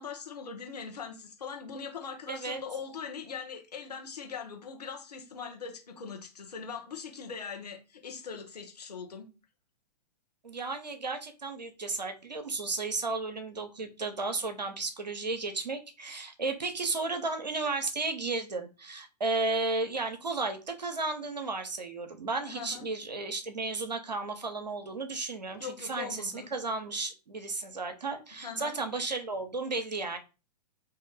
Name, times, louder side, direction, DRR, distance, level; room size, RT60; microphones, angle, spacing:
voice 1, 0.0-9.3 22.5-22.9 25.5-26.5 28.4-28.7, left 6 dB, 70° left, 1.1 m, -41 dB
voice 2, 2.3-2.6 10.4-30.2, right 3 dB, 80° right, 0.7 m, -34 dB
2.9 x 2.7 x 3.7 m
figure-of-eight pair, 105°, 21 cm